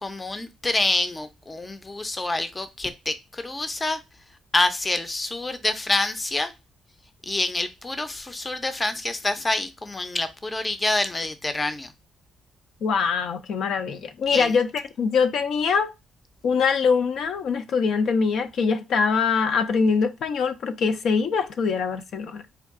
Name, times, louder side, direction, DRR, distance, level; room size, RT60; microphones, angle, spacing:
voice 1, 0.0-4.0 4.5-6.5 7.2-11.9 14.3-14.5, left 2 dB, 20° left, 0.5 m, -27 dB
voice 2, 12.8-15.9 16.4-22.4, left 5 dB, 70° left, 0.5 m, -23 dB
4.5 x 2.4 x 3.5 m
cardioid pair, 105°, 0 cm